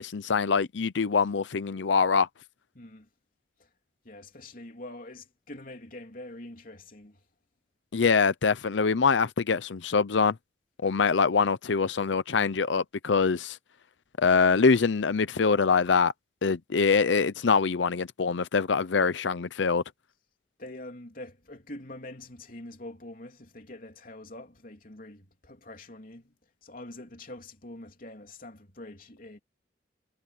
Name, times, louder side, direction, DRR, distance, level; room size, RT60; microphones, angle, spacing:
voice 1, 0.0-2.3 7.9-10.4 10.8-13.6 14.2-16.1 16.4-19.8, left 5 dB, 85° left, 0.6 m, -24 dB
voice 2, 2.7-3.1 3.6-3.7 4.0-7.2 20.6-26.4 26.6-29.4, left 1 dB, 50° left, 3.4 m, -45 dB
head